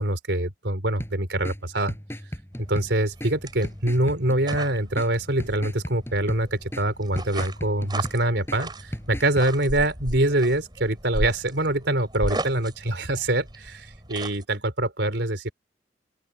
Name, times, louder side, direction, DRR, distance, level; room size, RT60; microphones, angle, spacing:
voice 1, 0.0-1.9 2.6-15.5, right 1 dB, 75° right, 3.9 m, -25 dB
sound 1, 1.0-9.5, equal, 15° left, 7.8 m, -37 dB
sound 2, 2.5-14.4, right 1 dB, 25° right, 5.7 m, -36 dB
open air
head